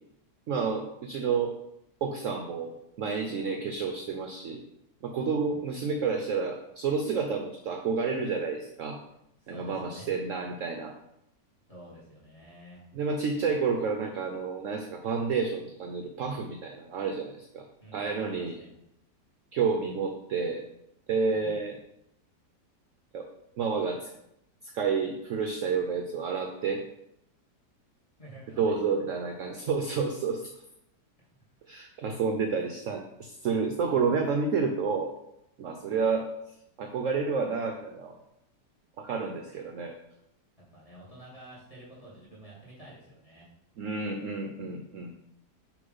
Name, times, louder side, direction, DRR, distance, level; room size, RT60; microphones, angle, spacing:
voice 1, 0.5-1.5 2.0-4.6 5.0-9.0 9.5-10.9 12.9-17.6 17.9-18.6 19.5-20.6 21.1-21.8 23.1-23.3 23.6-24.1 24.6-26.8 28.6-30.5 31.7-35.1 35.6-36.3 36.8-38.2 39.0-40.0 43.8-45.1, right 5 dB, 65° right, 4 dB, 0.8 m, -30 dB
voice 2, 5.3-5.6 9.4-10.1 11.7-12.8 17.8-18.7 21.3-21.6 28.2-28.8 31.6-31.7 40.7-43.5, right 1 dB, 20° left, -7 dB, 2.4 m, -49 dB
6.6 x 3.3 x 5.4 m, 0.80 s
omnidirectional pair, 1.8 m